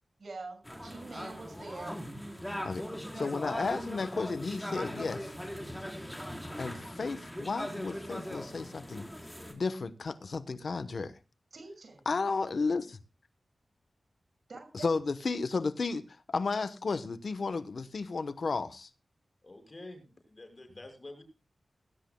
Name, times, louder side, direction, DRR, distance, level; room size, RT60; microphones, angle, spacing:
voice 1, 0.2-2.0 3.1-3.4 11.5-12.0 14.5-14.9, right 3 dB, 70° right, 6.1 m, -45 dB
sound 1, 0.7-9.5, equal, 5° left, 4.2 m, -40 dB
voice 2, 3.2-5.3 6.6-9.1 9.5-11.1 12.1-13.0 14.7-16.0 16.3-18.9, left 4 dB, 65° left, 1.0 m, -33 dB
voice 3, 19.4-21.2, left 2 dB, 35° left, 5.9 m, -48 dB
19.0 x 17.0 x 2.3 m
wide cardioid pair, 90°, 0 cm